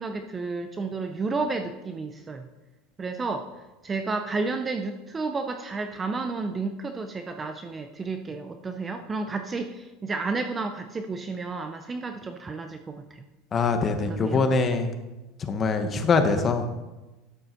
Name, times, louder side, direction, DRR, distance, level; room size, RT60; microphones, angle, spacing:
voice 1, 0.0-2.5 3.0-3.5 3.8-13.3 14.1-14.5, right 3 dB, 15° right, 6 dB, 0.4 m, -31 dB
voice 2, 13.5-14.9 15.5-16.7, left 4 dB, 20° left, 7 dB, 0.9 m, -23 dB
12.0 x 5.3 x 5.7 m, 1.1 s
supercardioid pair, 170°, 0 cm